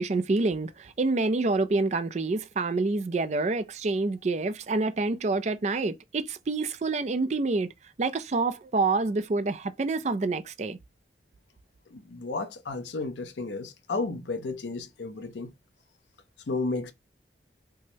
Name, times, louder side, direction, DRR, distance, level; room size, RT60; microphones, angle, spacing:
voice 1, 0.0-7.7 8.0-10.8, right 3 dB, 40° right, 0.4 m, -27 dB
voice 2, 11.9-15.5 16.5-16.9, left 3 dB, 80° left, 0.6 m, -33 dB
4.5 x 2.1 x 2.7 m
head